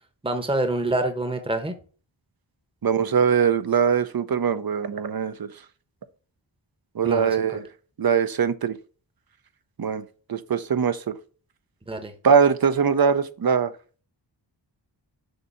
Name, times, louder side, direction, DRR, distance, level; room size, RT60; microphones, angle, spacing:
voice 1, 0.2-1.7 7.0-7.4 11.9-12.1, right 2 dB, 10° right, 0.8 m, -26 dB
voice 2, 2.8-5.5 6.9-7.6 8.0-8.8 9.8-11.1 12.2-13.7, right 6 dB, 50° right, 0.6 m, -22 dB
6.6 x 2.7 x 5.5 m
wide cardioid pair, 75°, 46 cm